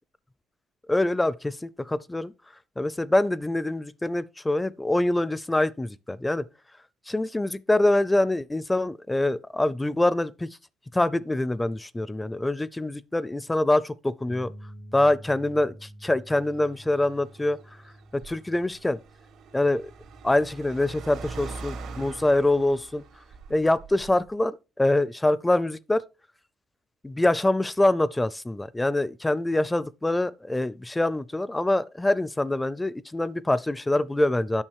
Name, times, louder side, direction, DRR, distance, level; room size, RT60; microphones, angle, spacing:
voice 1, 0.9-2.3 2.8-6.5 7.1-10.5 10.9-14.5 14.9-17.6 18.1-19.0 19.5-19.9 20.2-23.0 23.5-26.0 27.0-34.6, left 1 dB, 15° left, 0.5 m, -25 dB
sound 1, 14.3-20.5, equal, 90° left, 2.2 m, -48 dB
Car, 16.3-24.3, right 4 dB, 85° right, 2.1 m, -43 dB
9.0 x 6.1 x 4.7 m
cardioid pair, 90°, 0 cm